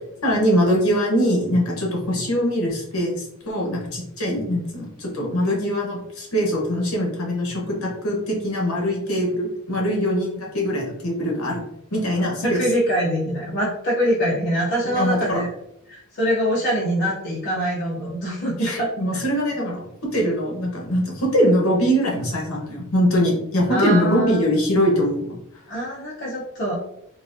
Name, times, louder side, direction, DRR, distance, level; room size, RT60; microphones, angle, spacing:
voice 1, 0.2-11.6 11.9-12.6 14.8-15.4 18.6-19.8 20.1-25.4, equal, 70° left, -1 dB, 1.1 m, -22 dB
voice 2, 12.4-15.5 15.9-18.9 23.7-24.4 25.7-26.8, equal, 50° left, -6 dB, 0.7 m, -23 dB
3.8 x 2.4 x 2.5 m, 0.78 s
head